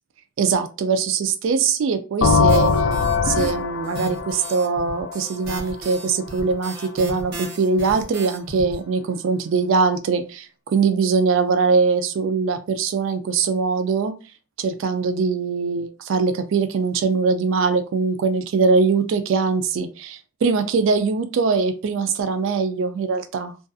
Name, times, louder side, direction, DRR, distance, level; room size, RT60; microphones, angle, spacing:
voice 1, 0.4-2.7 3.2-14.1 14.6-23.5, right 4 dB, 85° right, 9 dB, 0.3 m, -22 dB
sound 1, 2.2-5.9, left 5 dB, 75° left, 0.4 m, -21 dB
sound 2, 2.5-3.5 3.8-8.8, right 2 dB, 55° right, 0.9 m, -35 dB
2.5 x 2.3 x 2.5 m, 0.34 s
head